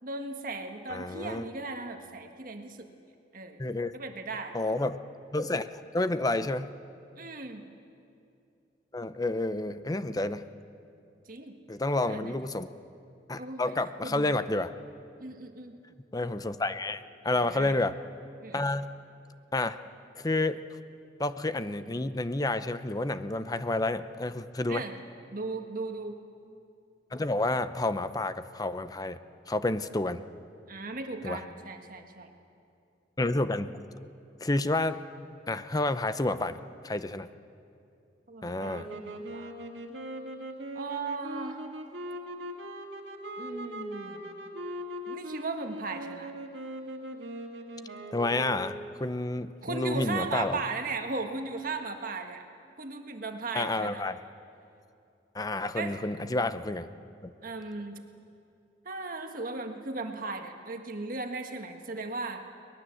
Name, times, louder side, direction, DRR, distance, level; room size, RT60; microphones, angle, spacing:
voice 1, 0.0-2.9 3.3-3.6 3.9-4.6 7.2-7.7 11.3-11.6 12.0-12.4 13.4-13.7 14.0-14.3 15.2-15.8 17.4-17.8 18.4-18.6 24.7-25.0 25.3-26.2 30.7-32.3 38.3-39.6 40.7-41.6 43.4-44.3 45.1-46.3 49.6-52.4 52.8-54.0 55.7-56.0 57.4-58.0 58.8-62.4, right 3 dB, 50° right, 5 dB, 1.6 m, -37 dB
voice 2, 0.9-1.5 3.6-3.9 4.5-5.0 5.3-6.7 8.9-10.5 11.7-12.7 13.3-14.7 16.1-17.9 18.5-18.9 19.5-19.8 20.2-20.6 21.2-24.8 27.1-29.2 29.5-30.2 31.2-31.4 33.2-33.8 34.4-35.0 35.5-36.6 36.8-37.3 38.4-38.9 48.1-50.6 53.5-54.2 55.3-56.9 57.2-57.3, left 2 dB, 20° left, 12 dB, 0.7 m, -30 dB
sound 1, 38.6-49.0, right 1 dB, 85° right, 2.1 m, -40 dB
22.5 x 20.0 x 7.7 m, 2.6 s
head